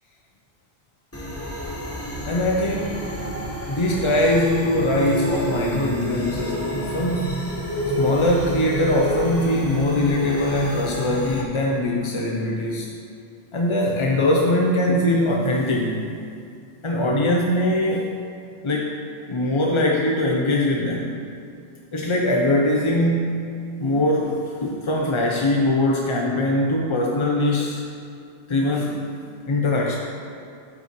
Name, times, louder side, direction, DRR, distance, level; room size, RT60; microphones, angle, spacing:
sound 1, 1.1-11.4, equal, 15° left, 0.9 m, -29 dB
voice 1, 2.3-3.1 3.7-7.4 8.0-12.9 13.5-16.1 16.8-18.1 18.6-21.2 21.9-23.4 23.8-27.9 28.5-29.0 29.5-30.0, left 1 dB, 35° left, -1 dB, 0.6 m, -22 dB
12.0 x 8.4 x 3.0 m, 2.3 s
omnidirectional pair, 1.1 m